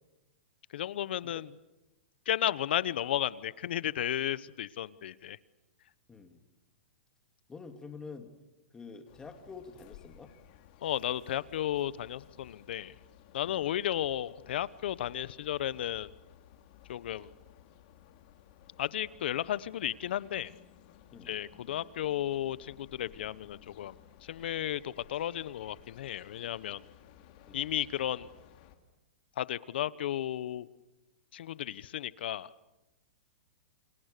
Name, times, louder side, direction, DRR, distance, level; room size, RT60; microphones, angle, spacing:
voice 1, 0.7-1.5 2.3-5.4 10.8-12.9 13.3-16.1 16.9-17.3 18.8-20.5 21.3-23.9 24.3-26.8 27.5-28.3 29.4-30.7 31.3-32.5, left 11 dB, 70° left, 19 dB, 0.9 m, -33 dB
voice 2, 6.1-6.4 7.5-8.3 8.7-10.3 13.5-13.7 21.1-21.3 27.5-27.7, left 4 dB, 10° left, 6 dB, 2.5 m, -47 dB
sound 1, 9.1-28.7, left 11 dB, 45° left, 2.7 m, -57 dB
30.0 x 28.0 x 6.8 m, 1.0 s
hypercardioid pair, 145°, 6 cm